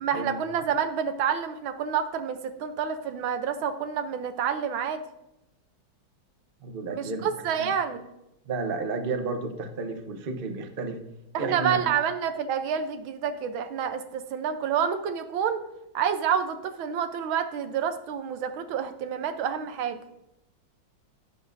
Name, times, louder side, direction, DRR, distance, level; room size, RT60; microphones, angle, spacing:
voice 1, 0.0-5.0 6.9-8.0 11.3-15.6 15.9-20.0, right 8 dB, 85° right, 9 dB, 1.6 m, -28 dB
voice 2, 6.6-7.3 7.6-7.7 8.5-11.0 11.4-11.8, right 3 dB, 40° right, 6 dB, 0.8 m, -32 dB
11.5 x 10.0 x 2.6 m, 0.91 s
omnidirectional pair, 2.2 m